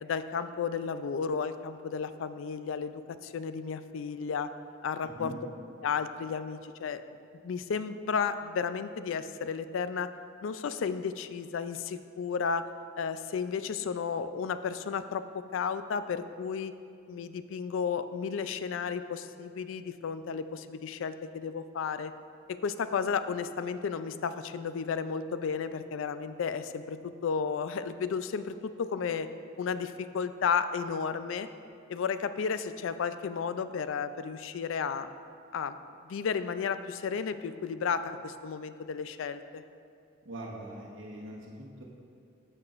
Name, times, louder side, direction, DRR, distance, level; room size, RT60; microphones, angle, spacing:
voice 1, 0.0-4.5 4.8-5.4 5.8-7.0 7.4-10.1 10.4-12.6 13.0-16.7 17.1-22.1 22.5-29.3 29.6-31.5 31.9-35.1 35.5-35.8 36.0-39.6, left 6 dB, 70° left, 12 dB, 0.3 m, -33 dB
voice 2, 5.0-5.4 40.2-41.8, right 1 dB, 65° right, -3 dB, 1.1 m, -42 dB
11.5 x 6.7 x 2.5 m, 2.4 s
head